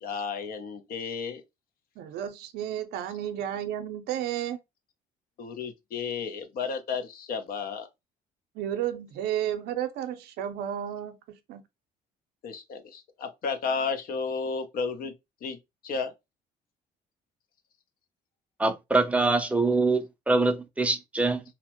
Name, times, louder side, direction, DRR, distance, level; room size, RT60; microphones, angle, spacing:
voice 1, 0.0-1.4 5.4-7.9 12.4-15.1 15.4-15.6 15.8-16.1, left 5 dB, 60° left, 0.6 m, -32 dB
voice 2, 2.0-4.6 8.5-11.6, right 10 dB, 75° right, 0.5 m, -32 dB
voice 3, 18.6-21.4, right 3 dB, 10° right, 0.4 m, -24 dB
2.8 x 2.0 x 2.8 m
cardioid pair, 90°, 17 cm